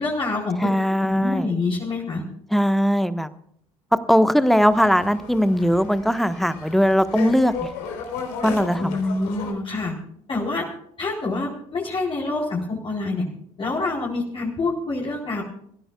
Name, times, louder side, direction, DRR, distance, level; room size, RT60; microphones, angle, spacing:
voice 1, 0.0-0.7 1.0-2.2 8.8-10.0 10.3-10.7 11.0-13.2 13.6-15.4, left 3 dB, 30° left, -3 dB, 4.1 m, -26 dB
voice 2, 0.6-1.5 2.5-3.3 4.1-7.7 8.4-9.0, equal, ahead, 12 dB, 1.3 m, -20 dB
sound 1, 4.4-9.5, left 5 dB, 60° left, 4.0 m, -35 dB
27.0 x 15.5 x 2.4 m, 0.66 s
figure-of-eight pair, 60°, 18 cm